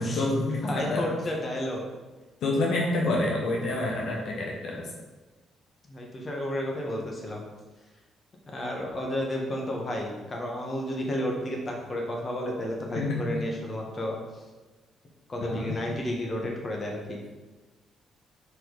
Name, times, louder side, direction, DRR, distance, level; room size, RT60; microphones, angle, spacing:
voice 1, 0.0-1.2 2.4-4.9 12.9-13.3 15.4-15.8, left 2 dB, 70° left, -1 dB, 1.2 m, -28 dB
voice 2, 0.6-1.8 5.9-7.4 8.5-14.2 15.3-17.2, left 1 dB, 35° left, 0 dB, 1.5 m, -32 dB
5.9 x 5.2 x 4.0 m, 1.2 s
cardioid pair, 90°, 0 cm